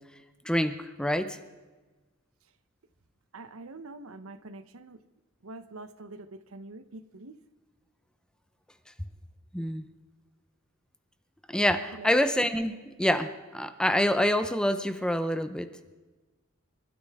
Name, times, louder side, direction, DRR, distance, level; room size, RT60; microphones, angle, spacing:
voice 1, 0.5-1.4 9.5-9.8 11.5-15.7, equal, 5° left, 9 dB, 0.7 m, -26 dB
voice 2, 3.3-5.0 5.4-7.3 11.9-12.1, right 2 dB, 75° right, 12 dB, 0.8 m, -45 dB
26.0 x 12.5 x 3.5 m, 1.2 s
head